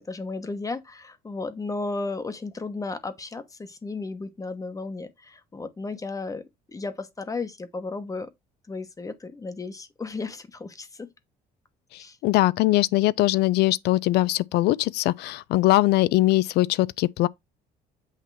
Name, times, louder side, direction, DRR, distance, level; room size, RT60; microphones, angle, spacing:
voice 1, 0.0-6.4 6.7-8.3 8.7-11.1 12.0-12.2, left 3 dB, 20° left, 1.0 m, -34 dB
voice 2, 11.9-17.3, left 17 dB, 75° left, 0.4 m, -21 dB
8.3 x 2.9 x 4.6 m
cardioid pair, 110°, 17 cm